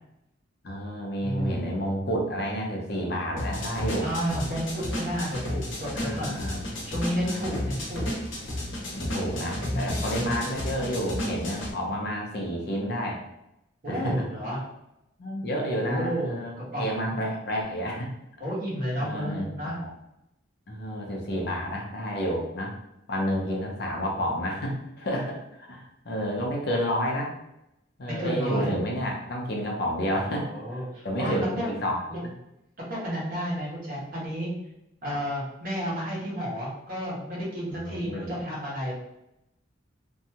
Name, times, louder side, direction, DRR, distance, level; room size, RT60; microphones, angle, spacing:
voice 1, 0.6-4.1 6.0-6.7 7.3-7.6 8.9-13.2 13.9-14.2 15.2-18.1 19.0-19.9 20.7-22.7 23.1-27.3 28.0-32.0 35.1-35.2 37.8-38.3, equal, 60° left, 0 dB, 0.6 m, -30 dB
voice 2, 1.2-1.7 4.0-8.1 9.3-10.5 13.8-14.6 15.7-17.2 18.4-19.8 28.2-28.8 30.3-31.7 32.1-32.2 32.9-34.5 35.0-38.9, equal, 50° right, -6 dB, 1.1 m, -32 dB
sound 1, 3.4-11.7, left 1 dB, 90° left, 0.8 m, -32 dB
2.7 x 2.2 x 2.8 m, 0.86 s
head